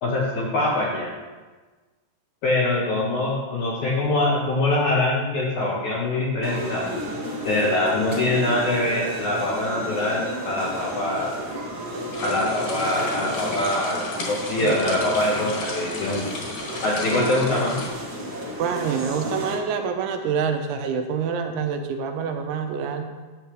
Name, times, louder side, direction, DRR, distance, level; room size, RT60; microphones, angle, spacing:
voice 1, 0.0-1.1 2.4-6.9 7.4-11.4 12.2-16.3 16.8-17.8, left 2 dB, 85° left, -5 dB, 1.6 m, -24 dB
sound 1, 6.4-19.5, equal, 45° right, 1.3 m, -33 dB
sound 2, 12.1-17.9, left 3 dB, 60° left, 2.7 m, -34 dB
voice 2, 18.6-23.1, right 6 dB, 85° right, 5 dB, 3.2 m, -26 dB
12.0 x 8.4 x 3.2 m, 1.3 s
omnidirectional pair, 5.4 m